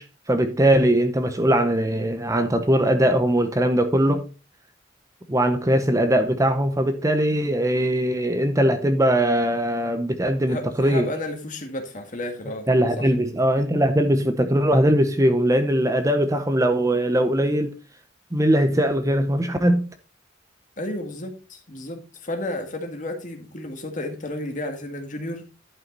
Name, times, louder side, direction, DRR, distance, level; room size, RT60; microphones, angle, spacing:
voice 1, 0.0-4.2 5.3-11.1 12.7-17.7 18.3-19.8, right 1 dB, 15° right, 0.7 m, -20 dB
voice 2, 10.5-12.7 13.0-13.1 20.8-25.4, left 1 dB, 40° left, 1.7 m, -32 dB
11.0 x 5.6 x 4.0 m
head